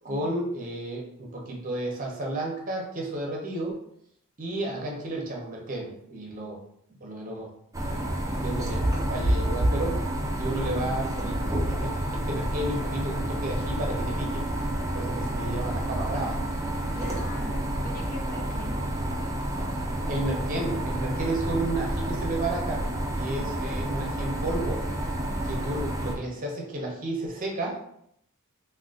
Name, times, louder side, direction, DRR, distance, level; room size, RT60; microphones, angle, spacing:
voice 1, 0.0-3.8 4.4-6.6 7.0-7.5 8.3-9.9 10.4-11.4 11.7-14.4 14.9-16.4 20.1-22.9 23.2-24.8 25.4-27.8, right 1 dB, 40° right, -1 dB, 0.7 m, -32 dB
sound 1, 7.7-26.2, right 1 dB, 15° right, 0.4 m, -29 dB
voice 2, 16.9-18.9, left 2 dB, 45° left, 0 dB, 0.6 m, -42 dB
3.6 x 2.2 x 2.4 m, 0.73 s
head